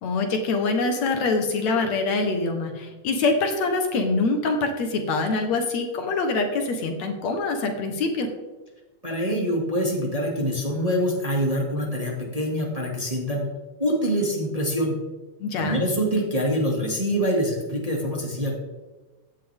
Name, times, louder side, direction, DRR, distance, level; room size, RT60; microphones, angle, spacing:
voice 1, 0.0-8.3 15.4-15.8, left 3 dB, 65° left, 5 dB, 2.5 m, -24 dB
voice 2, 9.0-13.5 13.8-14.9 15.6-18.6, equal, 15° right, -2 dB, 2.1 m, -25 dB
16.0 x 10.5 x 3.6 m, 1.2 s
omnidirectional pair, 3.5 m